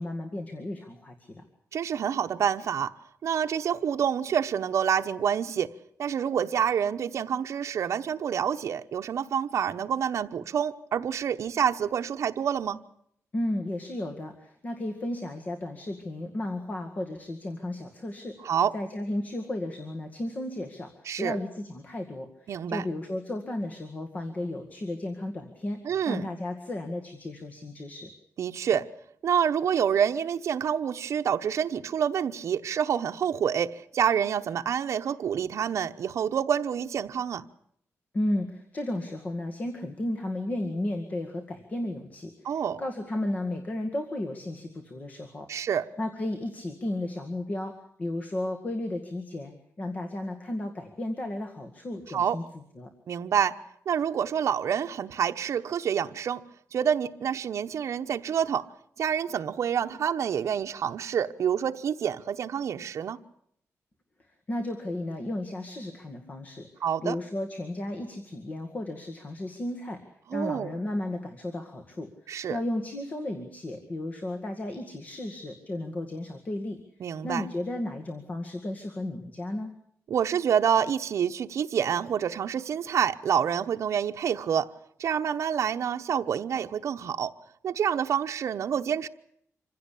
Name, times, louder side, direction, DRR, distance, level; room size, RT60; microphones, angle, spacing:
voice 1, 0.0-1.4 13.3-25.8 26.1-28.1 38.1-45.7 46.0-47.7 48.0-52.4 52.8-52.9 64.5-66.7 67.0-70.0 70.3-79.7, left 1 dB, 30° left, 2.0 m, -34 dB
voice 2, 1.7-2.9 3.2-5.7 6.0-12.8 18.4-18.7 21.1-21.4 22.5-22.8 25.8-26.2 28.4-28.8 29.2-37.4 42.4-42.8 45.5-45.8 52.1-52.4 53.1-53.5 53.9-56.4 56.7-58.6 59.0-63.2 66.8-67.2 70.3-70.8 72.3-72.6 77.0-77.5 80.1-84.7 85.0-87.3 87.6-89.1, right 8 dB, 65° right, 1.0 m, -27 dB
26.0 x 16.0 x 8.5 m
wide cardioid pair, 180°, 5 cm